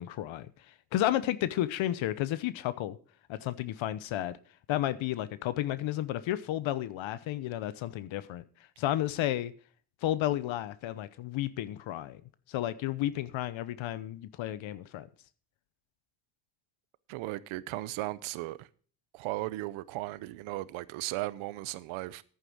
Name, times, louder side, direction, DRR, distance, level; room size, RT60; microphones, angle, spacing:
voice 1, 0.0-3.0 3.3-4.4 4.7-8.4 8.8-9.5 10.0-12.2 12.5-15.1, left 13 dB, 75° left, 0.9 m, -32 dB
voice 2, 17.1-18.7 19.1-22.2, right 18 dB, 90° right, 0.8 m, -36 dB
10.5 x 9.1 x 6.1 m
supercardioid pair, 70°, 47 cm